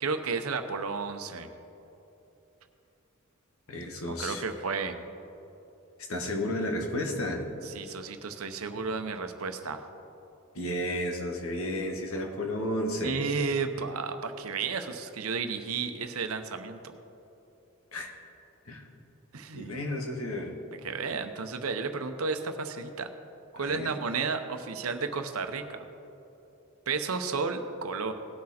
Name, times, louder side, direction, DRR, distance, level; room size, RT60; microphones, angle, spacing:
voice 1, 0.0-1.5 4.1-5.0 7.6-9.8 13.0-16.8 19.3-19.7 20.8-23.1 23.5-25.9 26.9-28.1, right 4 dB, 90° right, 7 dB, 0.8 m, -32 dB
voice 2, 3.7-4.4 6.1-7.4 10.5-13.2 17.9-18.1 18.6-18.9 19.5-20.5 23.5-23.9, left 1 dB, 80° left, 2 dB, 1.5 m, -32 dB
18.5 x 6.4 x 4.3 m, 3.0 s
head